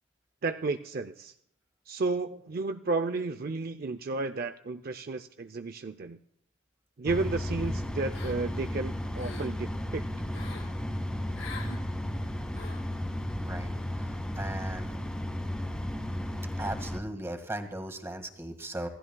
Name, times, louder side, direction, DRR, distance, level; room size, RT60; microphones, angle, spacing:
voice 1, 0.4-1.3 1.9-6.2 7.0-10.0, right 3 dB, 50° right, 9 dB, 0.5 m, -32 dB
sound 1, 7.1-17.0, left 1 dB, 5° left, 2.0 m, -34 dB
sound 2, 8.1-8.6 9.0-9.5 10.3-10.7 11.3-11.8 12.5-12.9, left 4 dB, 80° left, 2.8 m, -44 dB
voice 2, 13.4-13.7 14.0-15.0 16.6-18.9, right 1 dB, 15° right, 5 dB, 1.8 m, -38 dB
26.0 x 16.5 x 2.3 m, 0.72 s
head